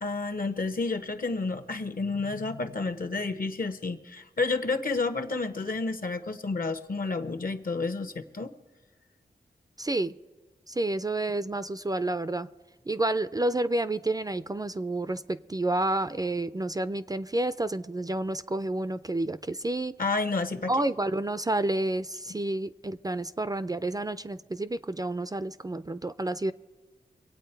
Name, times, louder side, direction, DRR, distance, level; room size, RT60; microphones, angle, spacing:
voice 1, 0.0-8.5 20.0-20.7, left 3 dB, 60° left, 8 dB, 1.0 m, -30 dB
voice 2, 9.8-10.1 10.7-12.5 12.9-19.9 20.7-26.5, right 2 dB, 20° right, 13 dB, 0.4 m, -29 dB
25.0 x 8.7 x 4.5 m, 1.3 s
wide cardioid pair, 95°, 17 cm